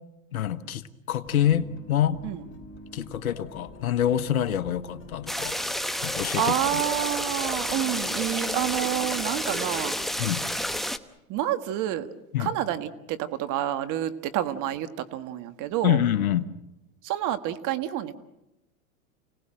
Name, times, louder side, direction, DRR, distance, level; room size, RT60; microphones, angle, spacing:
voice 1, 0.3-2.2 2.9-5.6 6.0-6.5 10.2-10.4 12.3-12.5 15.8-16.5, left 11 dB, 85° left, 13 dB, 1.4 m, -26 dB
sound 1, 1.2-10.9, left 1 dB, 25° left, 5.1 m, -46 dB
sound 2, 5.3-11.0, equal, ahead, 1.0 m, -30 dB
voice 2, 6.4-10.0 11.3-12.1 12.4-16.0 17.0-18.2, right 12 dB, 45° right, 11 dB, 1.8 m, -28 dB
29.0 x 19.0 x 7.7 m, 0.92 s
hypercardioid pair, 100°, 42 cm